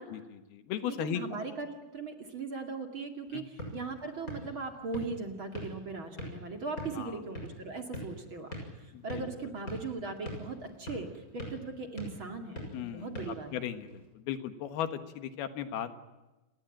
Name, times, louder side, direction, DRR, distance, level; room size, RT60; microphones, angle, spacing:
voice 1, 0.1-1.2 3.3-3.4 7.0-7.2 8.9-9.3 12.7-13.1 13.5-15.9, left 10 dB, 90° left, 10 dB, 3.4 m, -37 dB
voice 2, 0.9-11.1 11.3-13.5, right 4 dB, 40° right, 5 dB, 2.5 m, -39 dB
sound 1, 3.2-14.1, left 1 dB, 20° left, 7.2 m, -45 dB
30.0 x 19.0 x 9.1 m, 1.1 s
omnidirectional pair, 4.3 m